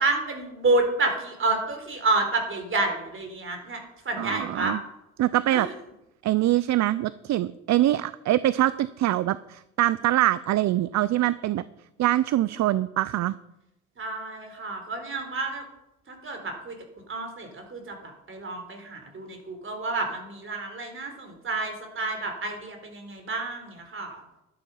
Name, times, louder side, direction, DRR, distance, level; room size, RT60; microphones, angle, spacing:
voice 1, 0.0-4.7 5.5-5.7 14.0-15.7 16.1-16.8 17.1-24.2, right 3 dB, 45° right, 5 dB, 3.9 m, -29 dB
voice 2, 4.2-4.8 5.2-5.7 6.2-11.6 12.0-13.3, right 14 dB, 65° right, 17 dB, 0.5 m, -24 dB
12.0 x 11.0 x 5.6 m, 0.90 s
cardioid pair, 90°, 30 cm